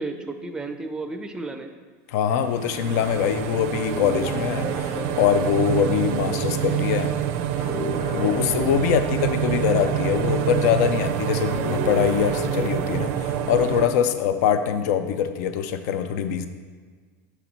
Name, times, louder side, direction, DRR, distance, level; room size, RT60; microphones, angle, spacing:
voice 1, 0.0-1.7 5.8-5.9 11.5-11.7, right 3 dB, 10° right, 7 dB, 0.5 m, -33 dB
voice 2, 2.1-7.1 8.1-16.5, left 8 dB, 70° left, 10 dB, 0.4 m, -23 dB
sound 1, 2.4-13.9, right 11 dB, 65° right, 0.4 m, -27 dB
Guitar, 3.7-10.9 11.4-15.1, left 2 dB, 90° left, 0.9 m, -35 dB
5.9 x 4.2 x 4.1 m, 1.5 s
supercardioid pair, 110°, 9 cm